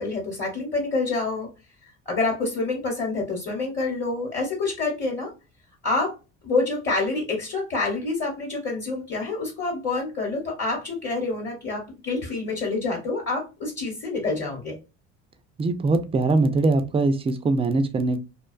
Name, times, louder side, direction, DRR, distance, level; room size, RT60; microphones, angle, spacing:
voice 1, 0.0-1.5 2.1-5.3 5.8-6.2 6.4-14.8, left 3 dB, 35° left, 1.0 m, -27 dB
voice 2, 15.6-18.2, right 3 dB, 20° right, 0.4 m, -22 dB
2.4 x 2.2 x 2.3 m
supercardioid pair, 100°, 32 cm